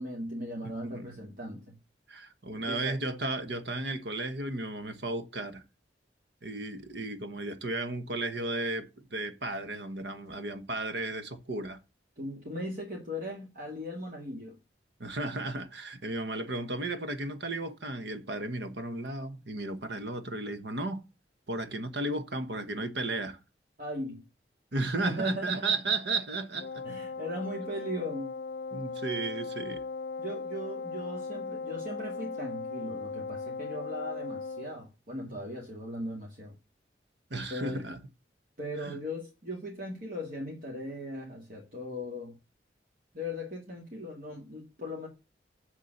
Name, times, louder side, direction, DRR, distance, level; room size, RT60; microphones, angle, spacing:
voice 1, 0.0-1.8 2.5-3.0 12.2-14.6 23.8-24.2 24.9-25.6 26.8-28.4 30.2-36.5 37.5-38.0 38.6-42.4 43.1-45.1, equal, 50° right, 2.2 m, -38 dB
voice 2, 2.1-5.6 6.4-11.8 15.0-21.0 21.5-23.4 24.7-26.8 28.7-29.8 37.3-38.0 38.8-39.0, right 2 dB, 75° right, 1.2 m, -34 dB
Wind instrument woodwind instrument, 26.6-34.8, left 4 dB, 60° left, 0.4 m, -38 dB
7.3 x 7.0 x 6.5 m
head